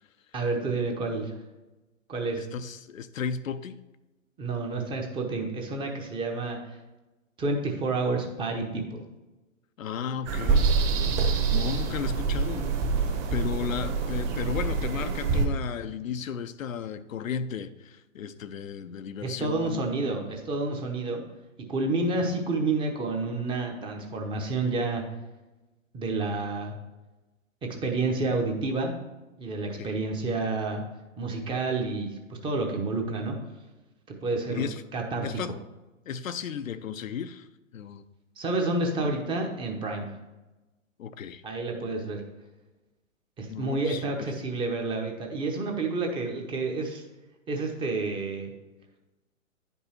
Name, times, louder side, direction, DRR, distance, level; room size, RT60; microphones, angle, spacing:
voice 1, 0.3-1.3 2.1-2.4 4.4-6.8 7.4-9.0 19.2-21.2 21.7-25.0 25.9-26.7 27.6-28.9 29.4-30.8 31.2-33.4 34.1-35.4 38.4-40.1 41.4-42.2 43.4-47.0 47.5-48.5, right 3 dB, 15° right, 0.8 m, -29 dB
voice 2, 2.4-3.8 9.8-10.7 11.1-19.9 29.7-30.0 34.5-34.8 35.2-35.5 36.1-37.5 37.7-38.0 41.0-41.4 43.5-44.3, left 7 dB, 75° left, 0.6 m, -35 dB
sound 1, 10.3-15.5, right 4 dB, 30° right, 1.2 m, -26 dB
9.6 x 5.4 x 4.3 m
hypercardioid pair, 125°, 40 cm